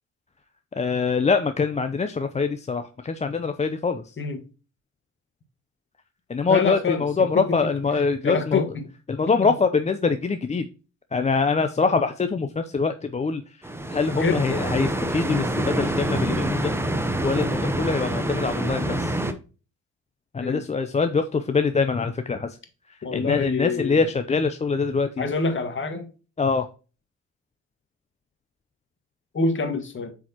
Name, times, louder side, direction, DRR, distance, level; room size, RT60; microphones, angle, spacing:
voice 1, 0.8-4.0 6.3-8.6 9.1-10.6 11.1-13.4 13.9-16.7 17.2-19.2 20.3-22.6 23.1-25.2 26.4-26.7, left 4 dB, 25° left, 0.5 m, -24 dB
voice 2, 6.5-7.6 8.2-8.9 14.2-14.6 15.0-15.1 20.4-20.6 23.0-24.1 25.2-26.1 29.3-30.1, left 4 dB, 40° left, 1.6 m, -26 dB
sound 1, 13.6-19.3, right 1 dB, 10° right, 0.9 m, -26 dB
7.7 x 4.7 x 2.9 m
cardioid pair, 90°, 30 cm